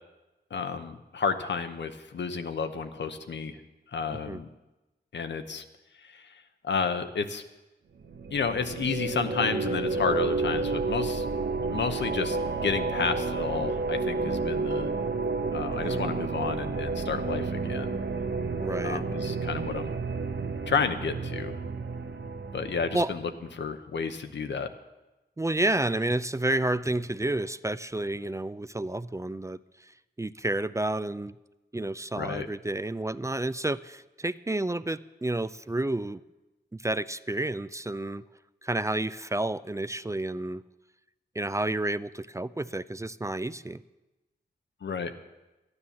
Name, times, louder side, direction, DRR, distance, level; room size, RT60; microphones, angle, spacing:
voice 1, 0.5-3.6 3.9-4.5 5.1-5.6 6.0-7.4 8.3-11.3 11.7-12.4 12.6-14.9 15.5-18.0 18.8-19.9 20.7-21.6 22.5-24.7 32.2-32.5 44.8-45.1, left 5 dB, 85° left, 8 dB, 0.9 m, -31 dB
sound 1, 8.0-23.4, right 3 dB, 80° right, 0.9 m, -31 dB
voice 2, 18.6-19.0 22.9-23.1 25.4-29.6 30.2-31.3 31.7-36.2 36.8-38.2 38.6-40.6 41.4-43.8, right 2 dB, 15° right, 14 dB, 0.4 m, -30 dB
12.5 x 9.8 x 7.1 m, 1.0 s
cardioid pair, 55°, 18 cm